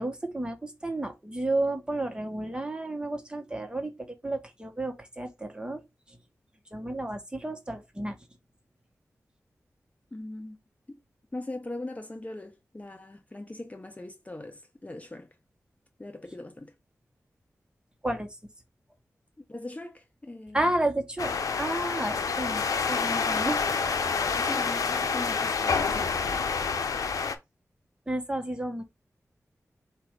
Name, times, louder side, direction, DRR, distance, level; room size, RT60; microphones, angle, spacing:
voice 1, 0.0-5.8 6.1-6.2 6.7-8.2 18.0-18.3 20.5-22.6 22.9-23.7 28.1-28.8, right 1 dB, 15° right, 1.2 m, -31 dB
voice 2, 10.1-10.6 10.9-11.0 11.3-15.3 16.0-16.7 19.5-20.6 24.3-26.4, left 2 dB, 25° left, 0.8 m, -40 dB
sound 1, 21.2-27.4, left 5 dB, 90° left, 0.6 m, -28 dB
4.6 x 2.5 x 4.5 m
cardioid pair, 55°, 6 cm